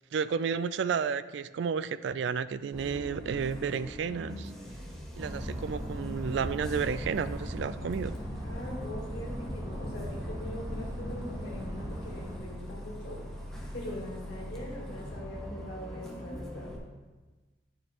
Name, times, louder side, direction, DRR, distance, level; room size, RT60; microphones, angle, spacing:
voice 1, 0.1-4.5 5.2-8.2, right 6 dB, 70° right, 15 dB, 0.3 m, -32 dB
Bus, 2.7-16.8, equal, 5° left, 0.9 m, -42 dB
sound 1, 5.2-12.4, equal, 15° right, 0.7 m, -38 dB
voice 2, 8.4-13.2 13.7-16.7, left 1 dB, 65° left, -4 dB, 2.1 m, -42 dB
10.0 x 6.5 x 2.9 m, 1.3 s
head